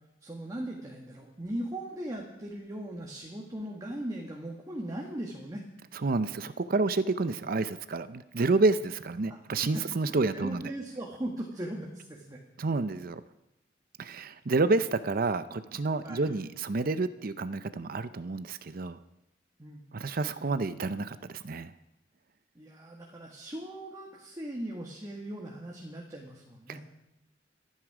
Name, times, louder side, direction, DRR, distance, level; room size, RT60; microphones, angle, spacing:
voice 1, 0.2-5.6 9.3-9.4 9.7-12.4 16.0-16.3 19.6-19.8 22.6-26.8, right 1 dB, 20° right, -1 dB, 1.8 m, -39 dB
voice 2, 5.9-10.6 12.6-13.2 14.0-19.0 19.9-21.7 26.7-26.8, right 3 dB, 55° right, 13 dB, 0.6 m, -29 dB
27.5 x 9.6 x 4.9 m, 0.91 s
head